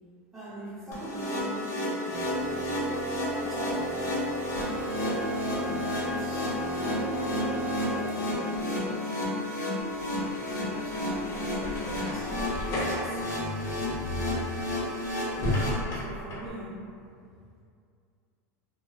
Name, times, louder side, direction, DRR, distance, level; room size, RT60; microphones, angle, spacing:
voice 1, 0.3-3.0 3.4-4.3 5.6-7.1 7.8-9.1 10.7-13.2 15.7-16.8, right 1 dB, ahead, -13 dB, 0.5 m, -43 dB
sound 1, 0.9-15.7, left 1 dB, 90° left, 0.7 m, -32 dB
sound 2, 2.1-8.4, right 3 dB, 55° right, 0.4 m, -35 dB
sound 3, 9.8-16.5, left 1 dB, 40° left, 0.6 m, -34 dB
2.5 x 2.2 x 2.2 m, 2.4 s
hypercardioid pair, 110°, 8 cm